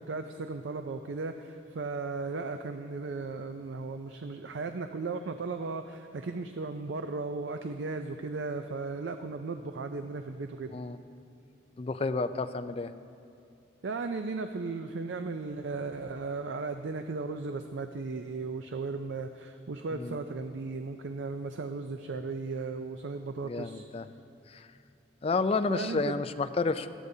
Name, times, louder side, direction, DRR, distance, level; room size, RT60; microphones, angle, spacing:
voice 1, 0.0-10.7 13.8-23.8 25.7-26.2, right 3 dB, 85° right, 7 dB, 0.5 m, -36 dB
voice 2, 11.8-12.9 19.9-20.2 23.4-24.1 24.5-24.7 25.2-26.9, left 3 dB, 35° left, 10 dB, 0.4 m, -30 dB
17.5 x 13.0 x 2.8 m, 2.6 s
head